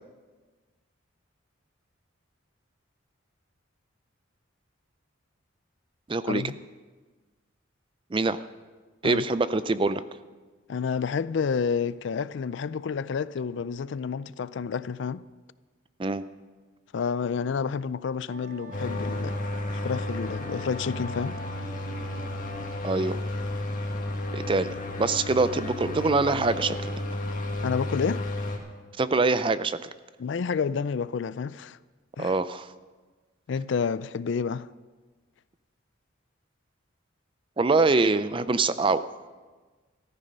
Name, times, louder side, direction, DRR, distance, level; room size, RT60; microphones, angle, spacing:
voice 1, 6.1-6.4 8.1-8.4 9.0-10.0 16.0-16.2 22.8-23.2 24.3-26.9 29.0-29.9 32.2-32.7 37.6-39.0, right 3 dB, 25° right, 0.4 m, -24 dB
voice 2, 10.7-15.2 16.9-19.4 19.7-21.4 27.6-28.2 30.2-31.8 32.2-32.4 33.5-34.7, left 6 dB, 60° left, 0.4 m, -29 dB
Wind instrument woodwind instrument, 18.3-23.1, right 1 dB, 65° right, 2.7 m, -46 dB
sound 1, 18.7-28.6, left 1 dB, 40° left, 2.0 m, -32 dB
14.0 x 13.5 x 5.4 m
head